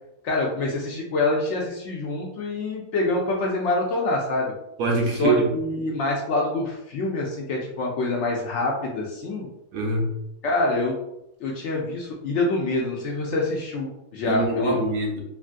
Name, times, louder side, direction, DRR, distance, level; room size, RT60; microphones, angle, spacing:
voice 1, 0.2-4.5 5.2-9.5 10.4-10.9 11.4-14.8, left 2 dB, 65° left, -1 dB, 0.7 m, -26 dB
voice 2, 4.8-5.5 9.7-10.1 14.2-15.2, right 2 dB, 75° right, 0 dB, 1.1 m, -23 dB
3.1 x 2.4 x 2.5 m, 0.84 s
omnidirectional pair, 1.5 m